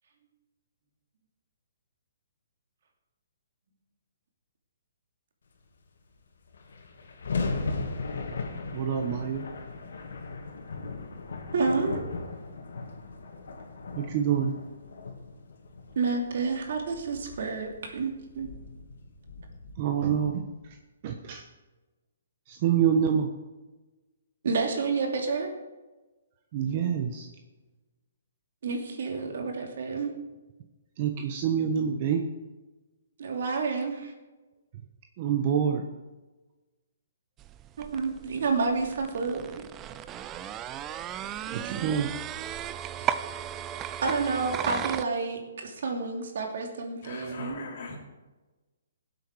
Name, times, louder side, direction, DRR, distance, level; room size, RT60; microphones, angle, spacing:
sound 1, 6.1-6.2 6.3-20.7, left 3 dB, 75° left, 2.5 m, -38 dB
voice 1, 8.7-9.5 14.0-14.5 19.8-20.4 21.0-21.4 22.5-23.3 26.5-27.3 31.0-32.2 35.2-35.8 41.5-42.1 43.0-43.1, right 8 dB, 35° right, 4 dB, 1.1 m, -26 dB
voice 2, 11.5-12.0 15.9-18.5 24.4-25.5 28.6-30.1 33.2-34.1 37.8-39.6 44.0-47.7, right 4 dB, 60° right, 2 dB, 2.9 m, -29 dB
sound 2, 37.4-45.0, right 10 dB, 15° right, 0.4 m, -36 dB
voice 3, 47.0-48.0, left 4 dB, 40° left, -5 dB, 3.0 m, -40 dB
17.5 x 7.9 x 4.8 m, 1.2 s
hypercardioid pair, 165°, 0 cm